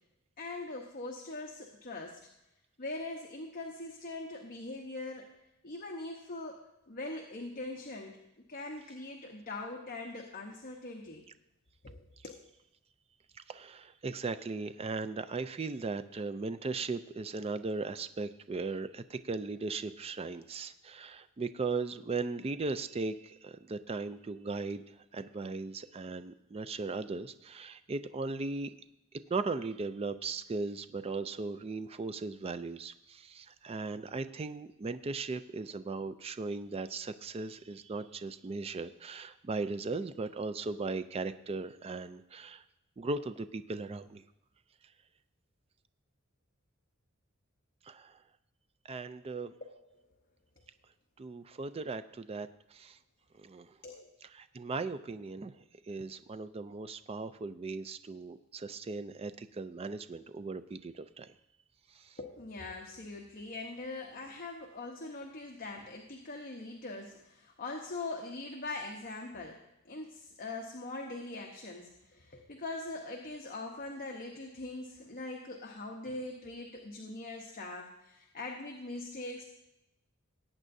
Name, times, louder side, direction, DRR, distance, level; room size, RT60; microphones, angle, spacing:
voice 1, 0.4-2.2 2.8-5.3 5.6-6.6 6.9-8.2 8.5-11.3 11.8-12.4 53.8-54.1 62.2-79.4, left 2 dB, 45° left, 1 dB, 1.0 m, -42 dB
voice 2, 13.5-28.7 29.3-42.6 43.0-44.2 47.8-48.2 48.8-49.5 51.2-53.0 53.3-53.8 54.3-61.3 61.9-62.2, right 3 dB, 30° right, 12 dB, 0.4 m, -38 dB
18.5 x 8.7 x 2.7 m, 0.89 s
head